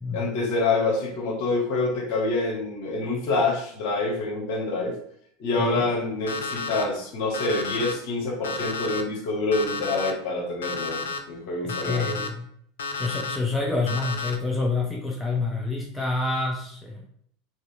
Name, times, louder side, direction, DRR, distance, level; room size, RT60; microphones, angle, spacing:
voice 1, 0.1-5.0 5.4-12.1, left 3 dB, 55° left, 0 dB, 0.9 m, -26 dB
voice 2, 5.6-5.9 11.6-12.5 13.0-17.1, left 3 dB, 10° left, -1 dB, 0.5 m, -28 dB
Alarm, 6.3-6.8 7.3-7.9 8.4-9.0 9.5-10.1 10.6-11.2 11.7-12.3 12.8-13.4 13.9-14.4, left 4 dB, 75° left, 0.3 m, -31 dB
2.9 x 2.8 x 2.4 m, 0.65 s
figure-of-eight pair, 80°, 0 cm